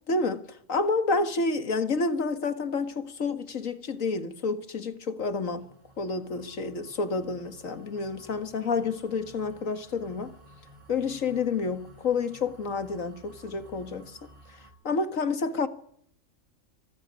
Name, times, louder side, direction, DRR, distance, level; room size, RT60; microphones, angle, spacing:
voice 1, 0.1-0.4 0.7-5.7 6.0-10.3 10.9-14.2 14.8-15.7, left 4 dB, 65° left, 2.1 m, -29 dB
sound 1, 5.3-14.7, equal, 20° right, 4.8 m, -54 dB
26.0 x 19.0 x 9.7 m
omnidirectional pair, 1.5 m